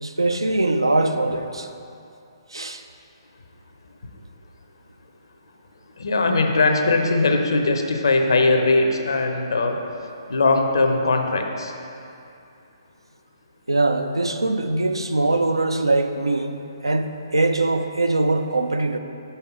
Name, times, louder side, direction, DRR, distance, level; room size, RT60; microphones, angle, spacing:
voice 1, 0.0-1.7 2.5-2.8 13.7-19.0, right 2 dB, 85° right, 8 dB, 0.4 m, -22 dB
voice 2, 6.0-9.8 10.3-11.7, left 3 dB, 70° left, 4 dB, 0.7 m, -20 dB
5.6 x 5.4 x 4.5 m, 2.7 s
figure-of-eight pair, 130°, 2 cm